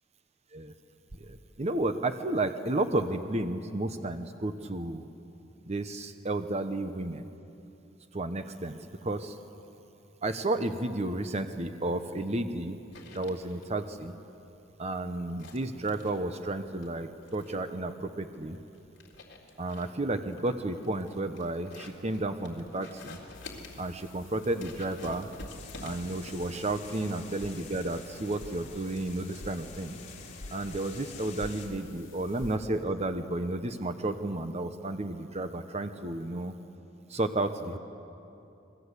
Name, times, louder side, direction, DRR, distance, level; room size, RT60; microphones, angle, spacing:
voice 1, 1.2-5.0 5.7-7.3 8.1-8.8 9.0-9.4 10.2-12.8 13.1-14.1 14.8-18.6 19.6-23.2 23.8-25.3 25.8-30.0 30.5-36.6 37.1-37.8, right 2 dB, 35° right, 8 dB, 0.9 m, -32 dB
sound 1, 11.5-29.8, left 2 dB, 65° left, 3.8 m, -50 dB
sound 2, 23.3-32.6, left 2 dB, 85° left, 0.9 m, -50 dB
sound 3, 25.5-31.7, left 4 dB, 40° left, 3.5 m, -48 dB
29.0 x 22.5 x 8.2 m, 2.8 s
head